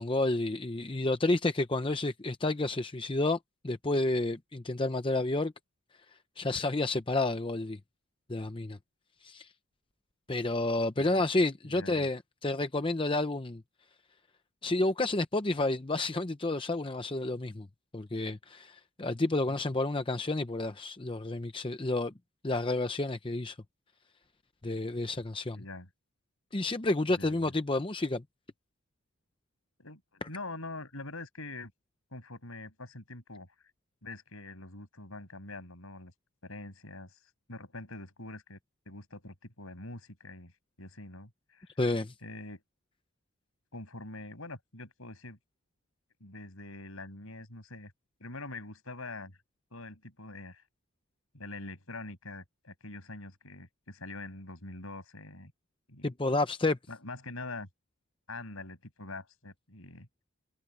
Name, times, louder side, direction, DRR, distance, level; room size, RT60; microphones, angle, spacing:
voice 1, 0.0-3.4 3.6-5.5 6.4-7.8 8.3-8.8 9.2-9.5 10.3-13.6 14.6-17.7 17.9-22.1 22.4-23.6 24.6-25.6 26.5-28.2 41.8-42.1 56.0-56.8, left 2 dB, 25° left, 0.7 m, -30 dB
voice 2, 11.6-12.1 19.4-19.6 25.5-25.9 27.1-27.5 29.8-31.7 32.1-33.5 34.0-36.1 36.4-37.2 37.5-38.6 38.8-40.5 40.8-41.7 42.2-42.6 43.7-45.4 46.2-47.9 48.2-49.4 49.7-50.6 51.3-55.5 55.9-56.1 56.9-57.7 58.3-60.1, left 2 dB, 65° left, 6.5 m, -44 dB
head